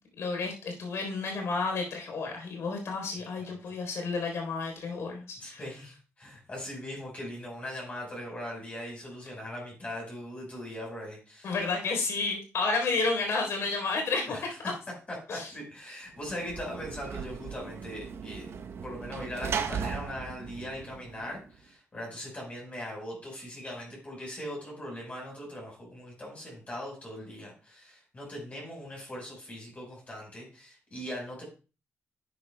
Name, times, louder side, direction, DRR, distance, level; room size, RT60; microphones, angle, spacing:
voice 1, 0.2-5.6 11.4-14.7 15.3-15.5, left 4 dB, 65° left, 2 dB, 3.7 m, -31 dB
voice 2, 3.2-3.6 5.4-11.6 14.3-14.7 15.1-31.4, left 1 dB, 30° left, -2 dB, 4.4 m, -40 dB
Sliding door / Slam, 16.2-21.6, right 6 dB, 60° right, 0.8 m, -37 dB
11.0 x 9.6 x 2.2 m, 0.33 s
wide cardioid pair, 140°, 5 cm